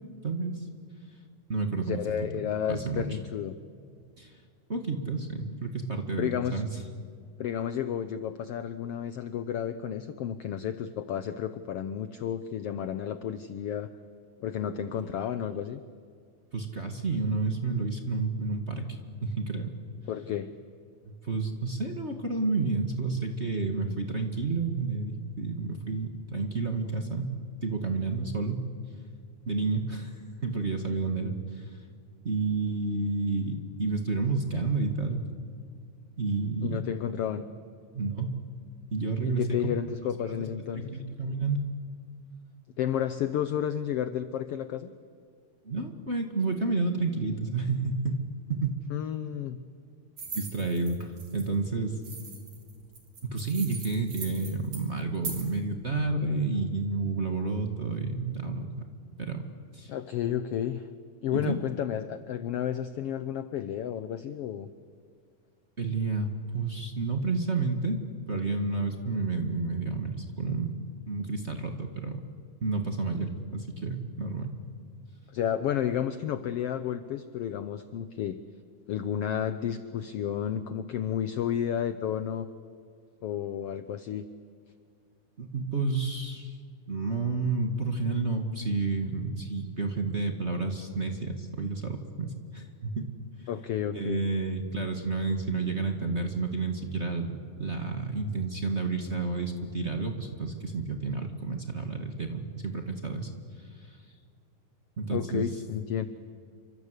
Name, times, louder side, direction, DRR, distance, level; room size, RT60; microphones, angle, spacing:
voice 1, 0.2-0.7 1.5-2.0 2.7-3.1 4.2-4.4 4.7-6.7 15.0-15.1 16.5-19.7 21.0-27.3 27.6-28.6 29.5-30.2 30.4-31.7 32.2-35.2 36.2-36.8 37.9-38.4 38.9-39.6 40.7-41.7 45.6-48.2 48.5-48.8 50.3-52.0 53.2-58.9 59.2-59.4 59.7-59.9 61.3-61.6 65.8-68.0 68.3-70.8 71.1-72.2 72.6-74.5 85.4-86.6 86.9-93.1 93.4-93.5 93.9-103.3 103.6-104.0 105.0-105.5, right 3 dB, 30° right, 4 dB, 1.4 m, -30 dB
voice 2, 1.8-3.5 6.2-6.6 7.4-13.9 14.4-15.8 20.1-20.5 36.6-37.4 39.2-40.9 42.8-44.9 48.9-49.6 59.9-60.9 61.2-64.7 75.3-78.4 78.9-82.5 83.2-84.3 93.5-94.2 105.1-106.1, left 9 dB, 85° left, 12 dB, 1.3 m, -31 dB
sound 1, 50.2-51.5 52.0-55.5, right 4 dB, 45° right, 4.8 m, -41 dB
29.0 x 25.0 x 8.2 m, 2.2 s
omnidirectional pair, 3.8 m